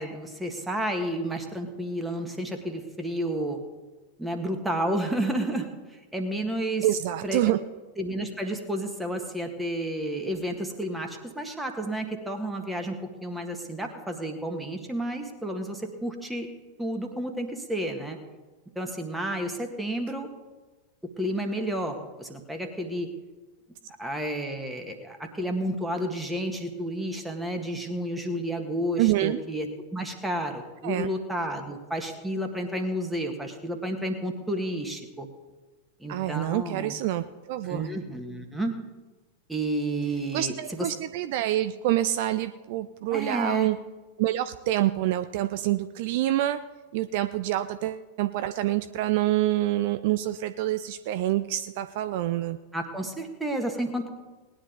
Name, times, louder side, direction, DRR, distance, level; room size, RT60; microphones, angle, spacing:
voice 1, 0.0-3.6 4.2-6.9 7.2-7.4 8.0-16.5 16.8-18.2 18.8-20.3 21.2-23.1 24.0-35.3 36.0-36.9 37.6-38.7 39.5-40.9 43.1-43.7 52.7-54.1, right 1 dB, 5° right, 3 dB, 1.8 m, -31 dB
voice 2, 6.8-7.6 29.0-29.4 30.8-31.1 36.1-37.9 40.3-43.8 44.2-46.6 46.9-52.6, right 14 dB, 50° right, 11 dB, 0.5 m, -27 dB
19.5 x 10.0 x 4.0 m, 1.2 s
figure-of-eight pair, 90°, 0 cm